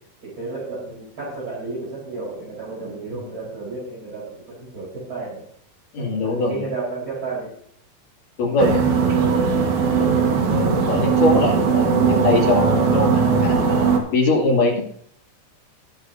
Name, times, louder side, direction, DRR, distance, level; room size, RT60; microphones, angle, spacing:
voice 1, 0.2-5.4 6.0-7.5, right 3 dB, 35° right, -8 dB, 5.0 m, -32 dB
voice 2, 5.9-6.6 8.4-9.2 10.0-13.6 14.1-14.8, left 2 dB, 70° left, -1 dB, 4.1 m, -22 dB
sound 1, 8.6-14.0, right 5 dB, 65° right, 2.9 m, -19 dB
21.0 x 7.8 x 2.7 m, 0.65 s
omnidirectional pair, 3.9 m